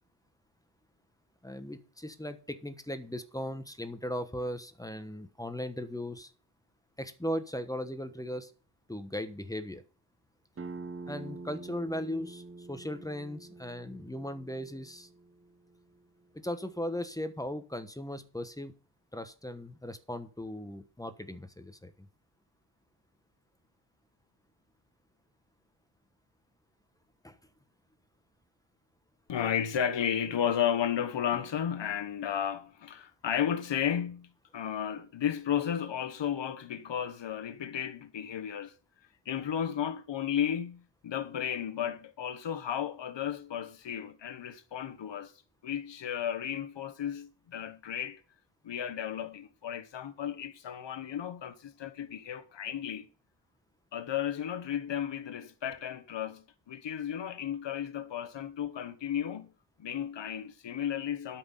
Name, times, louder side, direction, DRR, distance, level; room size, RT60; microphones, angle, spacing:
voice 1, 1.4-6.3 7.0-8.5 8.9-9.8 11.1-15.1 16.3-18.7 19.1-22.1 27.2-27.4, left 1 dB, 10° left, 1.1 m, -38 dB
sound 1, 10.6-16.0, right 3 dB, 30° right, 1.1 m, -46 dB
voice 2, 29.3-38.7 39.2-45.3 45.6-48.2 48.6-53.1 53.9-59.5 59.8-61.4, left 9 dB, 75° left, 1.4 m, -33 dB
13.0 x 6.0 x 5.6 m
wide cardioid pair, 145°, 44 cm